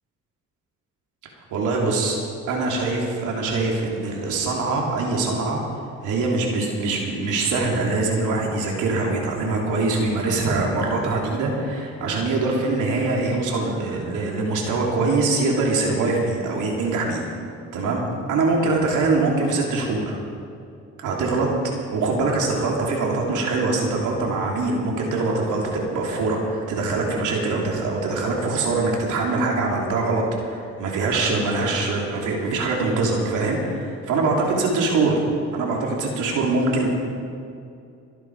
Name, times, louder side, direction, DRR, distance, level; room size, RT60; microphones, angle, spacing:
voice 1, 1.5-2.2 2.5-5.6 6.0-17.2 17.7-18.0 18.3-20.2 21.0-21.5 21.9-35.2 35.5-36.9, right 3 dB, 85° right, -1 dB, 3.4 m, -23 dB
23.5 x 10.5 x 4.9 m, 2.5 s
cardioid pair, 90°, 30 cm